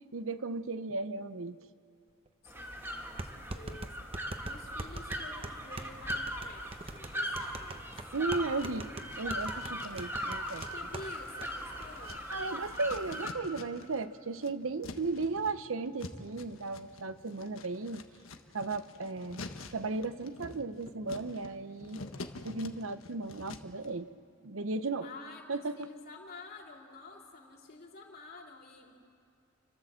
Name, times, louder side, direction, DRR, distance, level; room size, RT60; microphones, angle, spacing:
voice 1, 0.1-1.6 8.1-8.9 9.2-10.7 12.3-18.0 18.5-19.4 19.7-22.0 22.4-24.1 24.4-25.1 25.5-25.9, right 3 dB, 80° right, 12 dB, 0.8 m, -35 dB
sound 1, 2.3-2.4 3.2-11.1 11.4-11.5 11.8-12.2, right 2 dB, 30° right, 0.9 m, -42 dB
voice 2, 2.4-7.9 10.7-12.2 25.0-28.9, left 3 dB, 45° left, 0 dB, 3.1 m, -50 dB
sound 2, 2.5-13.3, equal, 10° right, 2.1 m, -39 dB
sound 3, 7.4-8.2 8.5-14.0 14.3-23.9, left 3 dB, 85° left, 1.4 m, -48 dB
29.5 x 13.0 x 7.6 m, 2.5 s
head